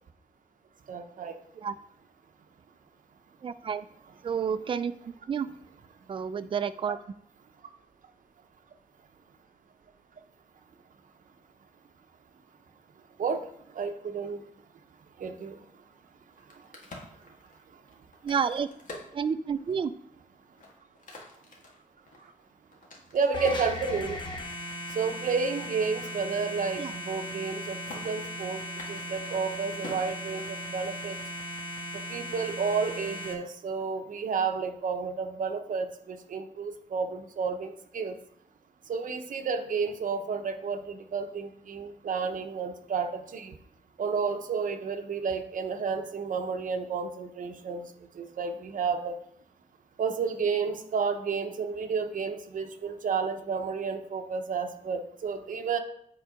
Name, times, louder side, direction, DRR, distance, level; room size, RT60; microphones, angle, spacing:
voice 1, 0.9-1.4 13.2-13.5 13.7-14.4 15.2-15.6 23.1-24.2 24.9-27.8 28.0-28.6 28.9-31.2 32.1-38.2 38.9-43.5 44.0-47.9 48.1-49.2 50.0-55.8, right 5 dB, 65° right, 6 dB, 0.8 m, -31 dB
voice 2, 3.4-3.9 4.2-5.5 6.1-7.0 18.2-18.7 19.1-19.9 26.8-26.9, right 7 dB, 35° right, 12 dB, 0.4 m, -30 dB
Crack, 16.3-19.9 20.4-23.7 24.3-25.7 26.0-26.1 26.4-26.8 27.0-27.6 27.9-28.0 28.7-30.9, left 2 dB, 65° left, 1.7 m, -47 dB
sound 1, 23.3-33.3, equal, 30° left, 1.1 m, -37 dB
7.9 x 4.6 x 5.0 m, 0.70 s
wide cardioid pair, 165°, 14 cm